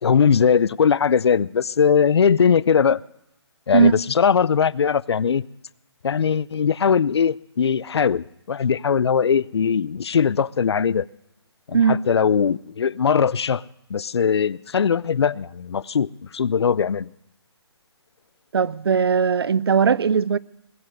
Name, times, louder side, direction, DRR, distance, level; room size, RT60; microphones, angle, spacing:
voice 1, 0.0-3.0 3.7-5.4 6.0-11.1 11.7-13.6 13.9-17.1, left 6 dB, 70° left, 0.5 m, -20 dB
voice 2, 18.5-20.4, right 6 dB, 60° right, 0.5 m, -18 dB
20.0 x 7.6 x 7.9 m
hypercardioid pair, 170°, 14 cm